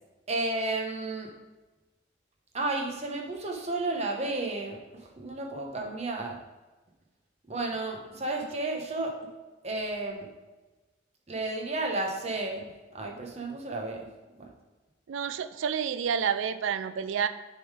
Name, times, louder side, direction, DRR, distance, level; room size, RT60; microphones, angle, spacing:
voice 1, 0.3-1.3 2.5-4.8 5.2-6.4 7.5-9.1 9.6-10.3 11.3-12.7 12.9-14.1 14.4-14.5, right 2 dB, 35° right, 1 dB, 0.9 m, -32 dB
voice 2, 15.1-17.3, right 7 dB, 80° right, 12 dB, 0.4 m, -29 dB
6.9 x 3.7 x 4.8 m, 1.2 s
head